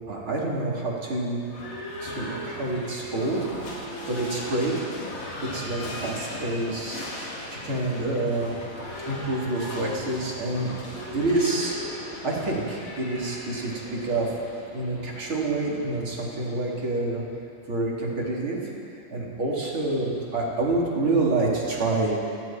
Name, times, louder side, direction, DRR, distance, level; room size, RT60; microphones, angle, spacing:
voice 1, 0.1-1.4 2.0-4.9 5.4-7.0 7.6-8.6 9.1-10.7 11.1-11.7 12.0-17.2 17.7-18.6 19.1-22.1, right 2 dB, 35° right, -4 dB, 4.6 m, -27 dB
Livestock farm animals working animals / Bell, 1.4-17.3, left 1 dB, 70° left, 6.3 m, -38 dB
29.5 x 21.5 x 4.7 m, 2.5 s
omnidirectional pair, 4.0 m